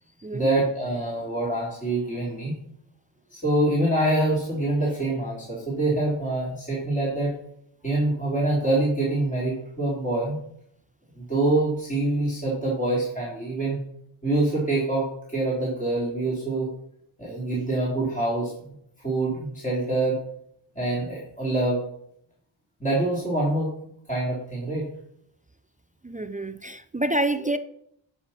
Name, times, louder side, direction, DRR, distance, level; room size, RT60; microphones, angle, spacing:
voice 1, 0.3-2.5 3.3-7.3 7.8-10.4 11.2-13.8 14.2-16.7 17.2-18.5 19.0-20.2 20.7-21.8 22.8-23.7 24.1-24.9, right 2 dB, 15° left, 3.3 m, -25 dB
voice 2, 26.0-27.6, right 1 dB, 20° right, 0.4 m, -27 dB
12.5 x 5.7 x 4.3 m
wide cardioid pair, 90°, 48 cm